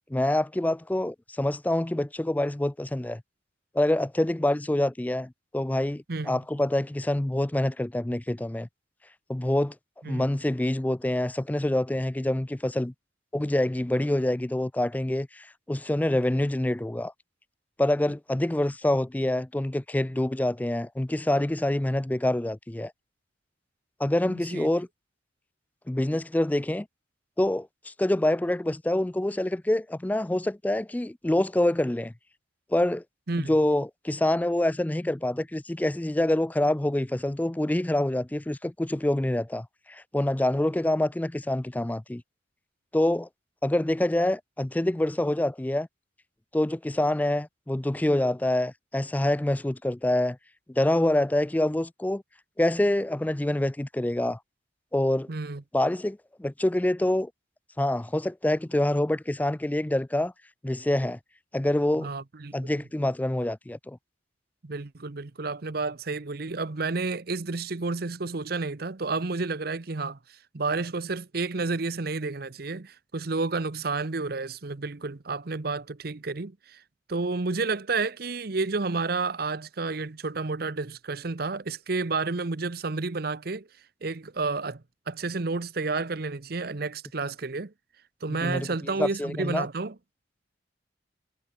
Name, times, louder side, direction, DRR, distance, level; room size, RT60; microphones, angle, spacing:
voice 1, 0.1-3.2 3.7-8.7 9.3-9.7 10.1-12.9 13.3-17.1 17.8-22.9 24.0-24.9 25.9-26.9 27.4-32.1 32.7-33.0 33.4-42.2 42.9-43.3 43.6-45.9 46.5-50.4 50.7-52.2 52.6-54.4 54.9-55.3 55.7-57.3 57.8-60.3 60.6-61.2 61.5-62.1 62.5-64.0 88.3-88.7 89.0-89.7, left 1 dB, 10° left, 0.3 m, -26 dB
voice 2, 6.1-6.4 10.0-10.3 24.3-24.7 33.3-33.5 55.3-55.6 62.0-62.6 64.6-70.2 70.5-76.8 77.1-83.7 84.0-87.7 88.2-90.0, right 3 dB, 55° right, 0.8 m, -31 dB
head